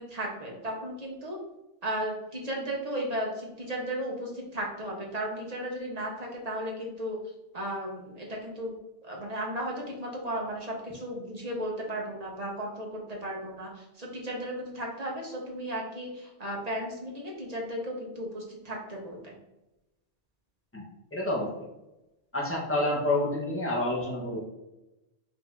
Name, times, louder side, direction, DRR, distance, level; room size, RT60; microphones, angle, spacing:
voice 1, 0.0-1.4 1.8-7.2 7.5-8.7 9.0-19.3, right 1 dB, 35° right, -1 dB, 1.0 m, -35 dB
voice 2, 21.1-21.5 22.3-24.4, left 1 dB, 15° left, -3 dB, 0.9 m, -28 dB
4.3 x 2.7 x 3.5 m, 0.94 s
omnidirectional pair, 1.2 m